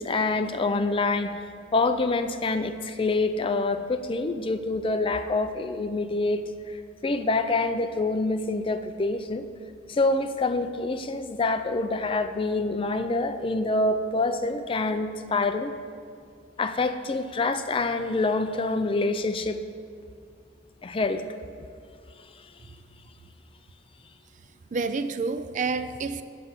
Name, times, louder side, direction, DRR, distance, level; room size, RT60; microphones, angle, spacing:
voice 1, 0.0-1.3 1.7-6.8 7.0-9.5 9.9-15.7 16.6-19.6 20.8-21.2, left 3 dB, 30° left, 9 dB, 0.4 m, -26 dB
voice 2, 24.4-26.2, right 4 dB, 40° right, 11 dB, 0.4 m, -29 dB
7.6 x 6.7 x 8.1 m, 2.2 s
head